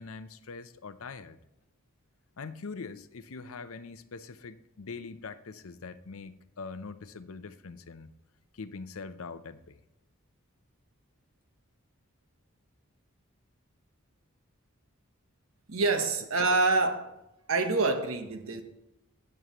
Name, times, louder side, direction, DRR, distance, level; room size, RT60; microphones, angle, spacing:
voice 1, 0.0-1.4 2.4-8.1 8.5-9.8, left 4 dB, 75° left, 0.6 m, -43 dB
voice 2, 15.7-17.1 17.5-18.6, right 3 dB, 70° right, 1.1 m, -26 dB
12.5 x 8.0 x 3.0 m
head